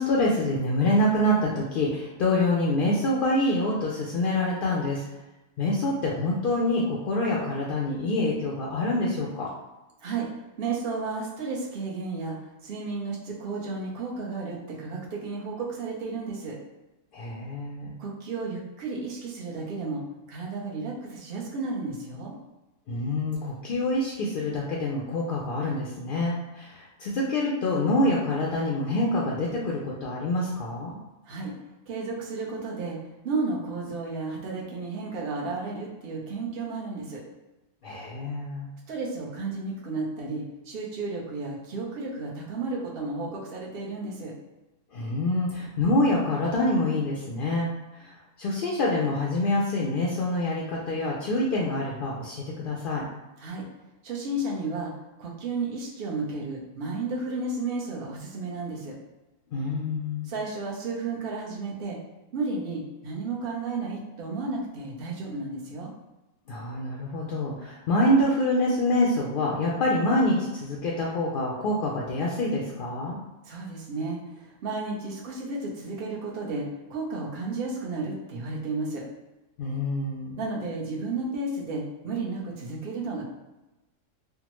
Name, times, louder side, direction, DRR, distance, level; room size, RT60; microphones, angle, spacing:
voice 1, 0.0-5.0 5.6-9.5 17.1-17.9 22.9-31.0 37.8-38.7 44.9-48.1 48.4-53.1 59.5-60.3 66.5-73.2 79.6-80.4, left 1 dB, 65° left, -3 dB, 0.5 m, -26 dB
voice 2, 10.6-12.4 12.6-16.6 18.0-20.0 20.3-22.3 31.3-31.5 31.9-33.0 33.2-37.2 38.9-44.3 53.4-53.6 54.0-54.9 55.2-58.9 60.3-62.0 62.3-65.9 73.4-79.0 80.4-83.2, right 3 dB, 50° right, -3 dB, 0.9 m, -33 dB
3.4 x 2.1 x 3.0 m, 1.0 s
omnidirectional pair, 1.3 m